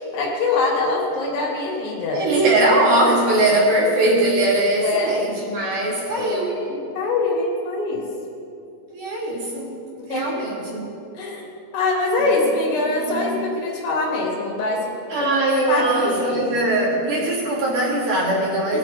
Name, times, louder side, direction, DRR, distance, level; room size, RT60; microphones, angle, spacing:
voice 1, 0.1-2.2 4.8-5.2 6.2-8.1 10.0-10.3 11.2-11.5 11.7-14.8 15.2-15.3 15.7-16.5 18.7-18.8, left 3 dB, 75° left, -2 dB, 4.1 m, -23 dB
voice 2, 2.1-6.6 8.9-9.7 10.1-10.9 13.1-13.3 15.1-18.8, right 1 dB, 50° right, -7 dB, 3.8 m, -20 dB
19.5 x 8.6 x 4.2 m, 2.6 s
omnidirectional pair, 4.9 m